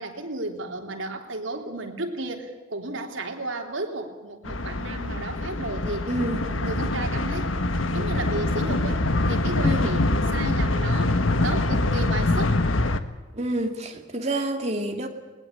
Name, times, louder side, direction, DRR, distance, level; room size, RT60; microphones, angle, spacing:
voice 1, 0.0-6.1 6.3-11.2 11.4-12.6, right 2 dB, 75° right, 3 dB, 3.4 m, -33 dB
sound 1, 4.4-13.0, left 2 dB, 85° left, 1.4 m, -24 dB
voice 2, 6.1-6.5 9.6-9.9 13.3-15.1, right 1 dB, 35° right, 3 dB, 2.5 m, -28 dB
20.5 x 20.0 x 8.7 m, 1.3 s
head